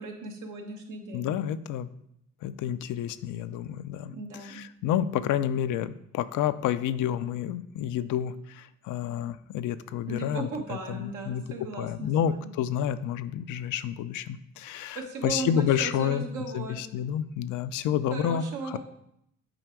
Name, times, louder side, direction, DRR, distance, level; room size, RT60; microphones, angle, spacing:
voice 1, 0.0-1.3 4.1-4.6 10.1-12.5 14.9-16.8 18.1-18.8, right 3 dB, 80° right, 1 dB, 1.5 m, -36 dB
voice 2, 1.1-1.9 2.4-4.1 4.4-11.4 11.8-16.3 16.5-18.8, left 10 dB, 80° left, 13 dB, 0.5 m, -29 dB
7.8 x 4.9 x 4.6 m, 0.77 s
cardioid pair, 90°, 30 cm